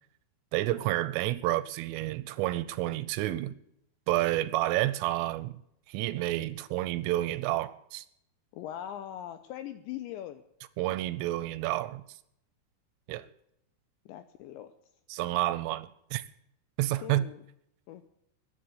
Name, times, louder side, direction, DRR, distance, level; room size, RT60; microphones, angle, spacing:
voice 1, 0.5-3.6 4.1-5.6 5.9-8.0 10.8-12.0 13.1-13.3 15.1-16.2 16.8-17.3, right 15 dB, 80° right, 3.1 m, -30 dB
voice 2, 8.5-10.4 14.1-14.7 17.0-17.4 17.9-18.1, left 11 dB, 80° left, 2.7 m, -41 dB
14.0 x 10.5 x 8.3 m
omnidirectional pair, 6.0 m